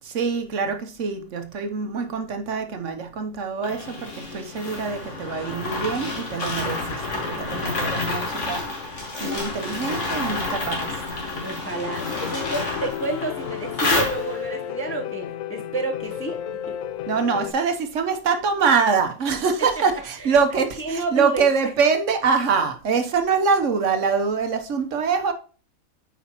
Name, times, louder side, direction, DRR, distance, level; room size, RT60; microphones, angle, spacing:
voice 1, 0.0-8.6 9.2-11.0 17.1-25.3, right 5 dB, 65° right, 1.2 m, -24 dB
sound 1, 3.6-14.6, left 2 dB, 60° left, 2.1 m, -29 dB
voice 2, 11.4-16.4 16.7-16.8 19.8-19.9 20.2-20.4 20.8-21.5, right 2 dB, 15° left, 0.6 m, -30 dB
Piano, 11.9-17.5, left 10 dB, 80° left, 1.0 m, -33 dB
8.4 x 5.0 x 2.9 m
omnidirectional pair, 1.4 m